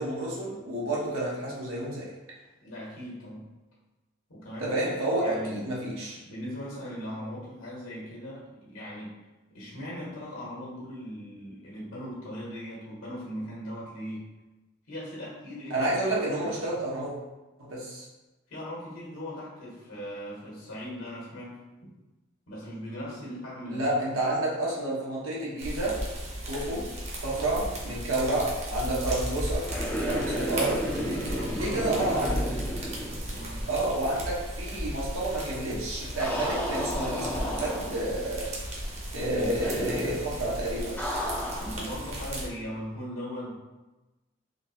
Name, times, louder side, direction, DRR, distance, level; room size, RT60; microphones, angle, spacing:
voice 1, 0.0-2.1 4.6-6.2 15.7-17.1 17.6-18.0 23.7-26.0 26.5-26.9 27.2-29.7 30.0-31.2 31.6-32.5 33.7-38.5 39.1-41.0, right 1 dB, 90° right, -5 dB, 1.0 m, -30 dB
voice 2, 2.6-3.5 4.3-4.9 5.2-5.6 6.2-9.1 9.5-14.3 14.9-15.8 16.4-16.6 18.5-21.6 22.5-23.8 30.6-31.8 33.3-33.6 39.4-39.7 41.6-43.5, equal, 80° left, -5 dB, 1.2 m, -39 dB
sound 1, 25.6-42.5, right 1 dB, 30° right, 0.6 m, -36 dB
sound 2, 29.6-33.8 34.0-34.1 36.2-38.2 39.6-40.3 41.0-41.8, equal, 10° left, 0.3 m, -33 dB
3.8 x 2.7 x 2.7 m, 1.1 s
head